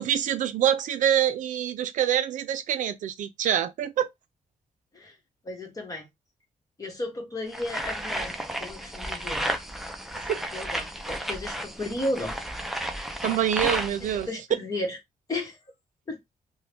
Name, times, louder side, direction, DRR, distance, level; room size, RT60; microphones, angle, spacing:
voice 1, 0.0-4.1 10.1-10.5 13.2-14.3, right 10 dB, 75° right, 0.5 m, -26 dB
voice 2, 5.4-6.1 6.8-9.4 10.5-12.4 13.2-13.7 14.0-15.0 15.3-15.6 16.1-16.2, left 1 dB, 25° left, 1.2 m, -34 dB
sound 1, 7.5-14.3, right 1 dB, ahead, 0.4 m, -33 dB
2.8 x 2.2 x 3.3 m
cardioid pair, 140°, 13 cm